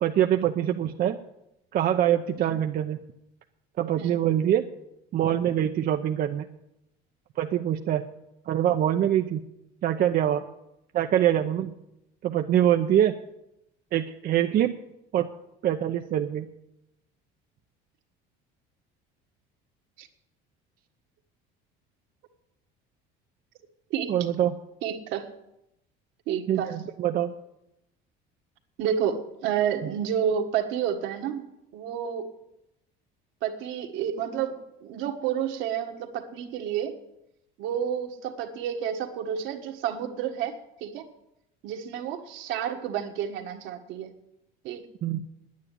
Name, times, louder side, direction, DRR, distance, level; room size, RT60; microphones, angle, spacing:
voice 1, 0.0-1.2 1.7-3.0 3.8-4.7 5.1-6.5 7.4-8.0 8.5-9.4 9.8-10.4 10.9-11.7 12.2-13.2 13.9-14.7 15.1-15.3 15.6-16.5 24.1-24.6 26.5-27.3 45.0-45.2, right 11 dB, 45° right, 5 dB, 0.7 m, -24 dB
voice 2, 24.8-25.3 26.3-26.7 28.8-31.4 31.7-32.3 33.4-36.9 37.6-40.5 40.8-41.1 41.6-44.1 44.6-44.8, right 9 dB, 70° right, 4 dB, 1.7 m, -30 dB
9.7 x 9.5 x 9.7 m, 0.85 s
cardioid pair, 120°, 20 cm